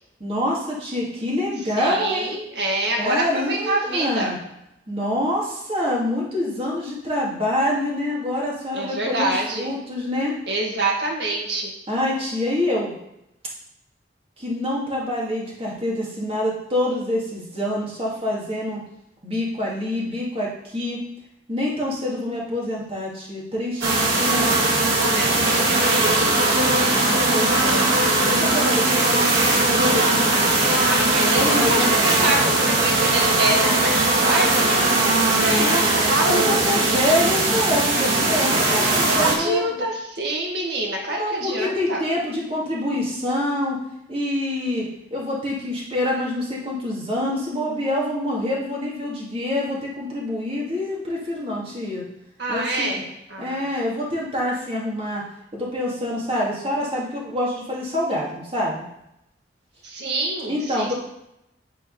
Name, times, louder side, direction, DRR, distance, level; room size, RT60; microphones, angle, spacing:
voice 1, 0.2-2.4 3.0-4.4 4.9-10.4 11.9-13.0 14.4-18.8 19.2-21.0 21.5-24.5 26.9-30.3 31.3-32.0 35.6-35.8 36.2-39.7 40.9-43.8 44.1-52.0 52.5-53.0 53.4-55.2 55.5-58.9 60.5-60.9, left 1 dB, 30° right, -4 dB, 2.2 m, -26 dB
voice 2, 1.7-4.3 8.7-9.7 10.5-11.7 25.0-26.6 30.8-36.6 39.1-42.0 52.4-53.0 53.3-53.7 59.8-60.9, right 2 dB, 60° right, -1 dB, 2.0 m, -26 dB
sound 1, 23.8-39.3, right 2 dB, 90° right, 2.0 m, -19 dB
9.1 x 4.4 x 5.4 m, 0.83 s
head